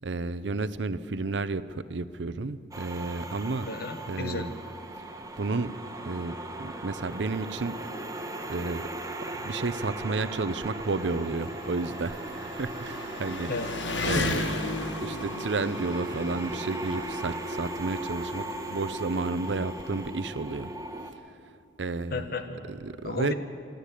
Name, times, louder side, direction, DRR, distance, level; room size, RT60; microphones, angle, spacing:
voice 1, 0.0-3.7 4.1-4.5 5.4-5.7 6.0-7.8 8.5-8.9 9.4-13.5 14.0-14.7 15.0-20.7 21.8-22.3 22.7-23.3, right 3 dB, 75° right, 13 dB, 0.7 m, -32 dB
sound 1, 2.7-21.1, right 1 dB, 20° right, 1.4 m, -38 dB
voice 2, 3.7-4.5 13.5-14.4 22.1-22.7 23.0-23.3, left 3 dB, 60° left, 8 dB, 1.5 m, -34 dB
Engine, 5.5-5.6 6.0-6.1 7.1-7.2 7.4-20.1, left 3 dB, 75° left, 1.6 m, -38 dB
sound 2, 7.6-8.5 8.8-9.2 9.5-10.1 11.6-12.3 13.4-13.5 13.8-15.4 16.2-17.3 18.7-19.4 20.2-20.7, right 1 dB, 50° right, 3.6 m, -51 dB
24.5 x 13.5 x 8.4 m, 2.4 s
head